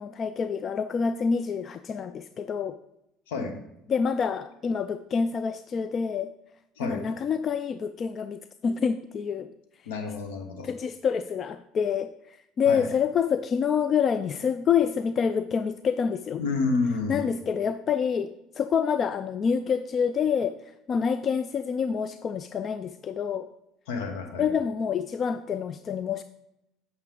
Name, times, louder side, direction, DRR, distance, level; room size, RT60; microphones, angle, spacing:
voice 1, 0.0-2.8 3.9-6.3 6.8-9.5 10.6-16.4 17.1-23.5 24.4-26.2, left 6 dB, 40° left, 12 dB, 0.4 m, -27 dB
voice 2, 3.3-3.6 6.8-7.0 9.9-10.7 12.7-12.9 16.4-17.2 23.9-24.5, left 4 dB, 75° left, 6 dB, 1.2 m, -29 dB
8.7 x 6.2 x 3.7 m, 0.84 s
hypercardioid pair, 70°, 0 cm